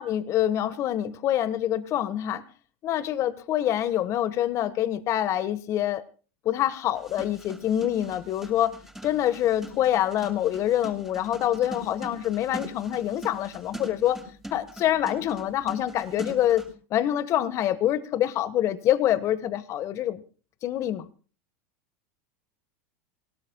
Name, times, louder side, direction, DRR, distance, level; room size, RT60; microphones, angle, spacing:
voice 1, 0.0-2.4 2.8-6.0 6.4-8.7 9.0-14.2 14.5-20.2 20.6-21.1, left 11 dB, 45° left, 1.3 m, -26 dB
sound 1, 6.9-16.7, equal, 5° right, 6.8 m, -41 dB
25.5 x 18.5 x 2.3 m
hypercardioid pair, 95°, 7 cm